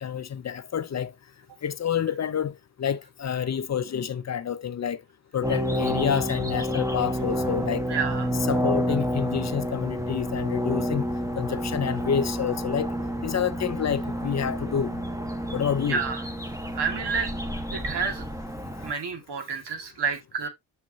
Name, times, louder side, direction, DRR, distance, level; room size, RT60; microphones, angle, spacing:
voice 1, 0.0-1.1 1.6-5.0 5.3-8.0 8.4-11.1 11.4-12.9 13.2-15.0 15.5-16.0, left 8 dB, 40° left, 0.6 m, -28 dB
sound 1, 5.4-18.9, equal, 10° right, 1.2 m, -29 dB
voice 2, 7.9-8.3 15.9-16.2 16.7-17.4 17.7-18.2 18.8-20.5, right 5 dB, 75° right, 2.0 m, -29 dB
6.4 x 6.1 x 2.7 m
cardioid pair, 85°, 41 cm